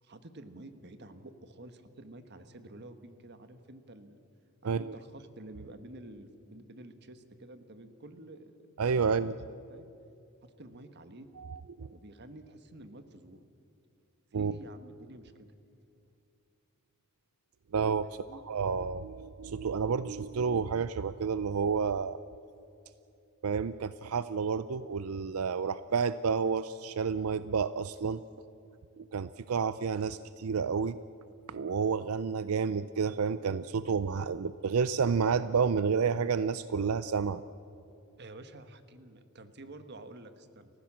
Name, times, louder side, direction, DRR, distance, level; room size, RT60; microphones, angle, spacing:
voice 1, 0.0-4.2 4.6-8.5 9.7-9.9 10.4-11.3 11.9-13.5 14.3-15.5 18.0-18.4 38.2-40.7, right 1 dB, 50° right, 10 dB, 1.4 m, -50 dB
voice 2, 8.8-9.3 11.4-11.9 14.3-14.5 17.7-18.1 18.5-22.2 23.4-28.2 29.0-31.0 31.5-37.4, right 5 dB, 85° right, 14 dB, 0.5 m, -30 dB
30.0 x 15.0 x 7.4 m, 2.6 s
head